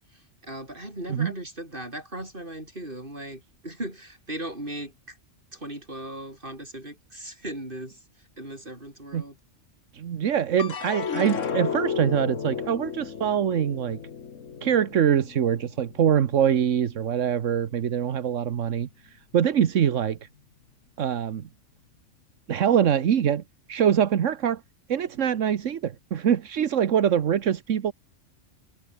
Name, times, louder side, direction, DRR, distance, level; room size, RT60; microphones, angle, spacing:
voice 1, 0.1-5.2 5.5-9.4, right 1 dB, 45° right, 7.9 m, -38 dB
voice 2, 9.9-14.0 14.6-20.3 21.0-21.5 22.5-23.4 23.7-24.6 24.9-27.9, right 9 dB, 80° right, 1.4 m, -24 dB
sound 1, 10.6-17.0 17.5-18.2, left 6 dB, 75° left, 1.8 m, -34 dB
omnidirectional pair, 1.3 m